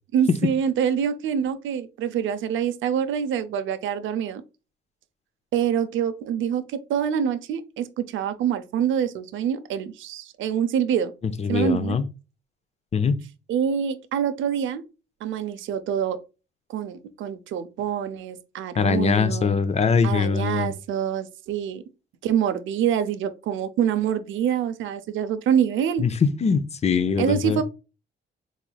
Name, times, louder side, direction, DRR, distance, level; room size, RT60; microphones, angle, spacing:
voice 1, 0.1-4.4 5.5-11.1 11.5-12.0 13.5-14.8 15.2-16.2 16.7-19.5 20.0-21.8 22.2-26.0 27.2-27.6, right 8 dB, 75° right, 0.5 m, -25 dB
voice 2, 11.2-12.0 12.9-13.2 18.8-20.7 26.0-27.6, left 5 dB, 35° left, 0.5 m, -22 dB
3.9 x 3.1 x 2.2 m
cardioid pair, 90°, 20 cm